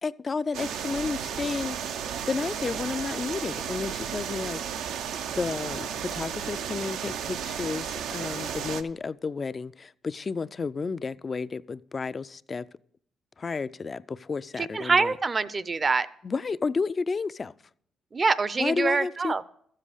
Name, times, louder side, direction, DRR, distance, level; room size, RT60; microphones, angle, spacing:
voice 1, 0.0-1.8 2.3-4.6 5.4-12.7 13.4-15.1 16.2-17.5 18.6-19.3, left 4 dB, 35° left, 0.3 m, -31 dB
sound 1, 0.5-8.8, right 8 dB, 85° right, 0.6 m, -33 dB
voice 2, 14.6-16.1 18.1-19.4, right 4 dB, 30° right, 0.5 m, -25 dB
13.0 x 7.6 x 4.9 m
cardioid pair, 90°, 0 cm